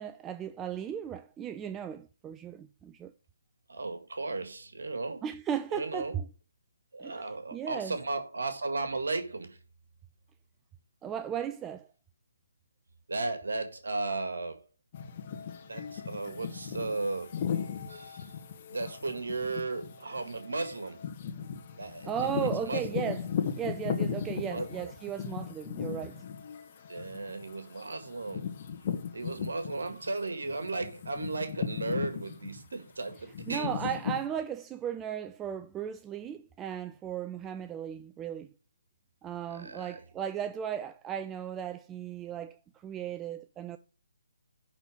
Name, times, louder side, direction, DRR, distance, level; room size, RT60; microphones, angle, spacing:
voice 1, 0.0-3.1 5.2-6.3 7.0-7.2 7.5-8.0 11.0-11.9 22.1-23.3 23.6-26.3 33.5-38.5 39.2-43.8, right 9 dB, 15° right, 0.3 m, -36 dB
voice 2, 3.7-5.3 5.7-6.2 6.9-9.6 13.1-14.6 15.6-17.4 17.9-18.4 18.7-21.0 21.8-22.1 22.4-23.0 24.4-24.9 26.9-28.4 29.1-33.8 39.5-40.0, right 3 dB, 75° right, 1.8 m, -35 dB
sound 1, 14.9-30.1 30.4-34.3, left 7 dB, 35° left, 1.5 m, -37 dB
10.5 x 4.0 x 6.2 m
figure-of-eight pair, 150°, 0 cm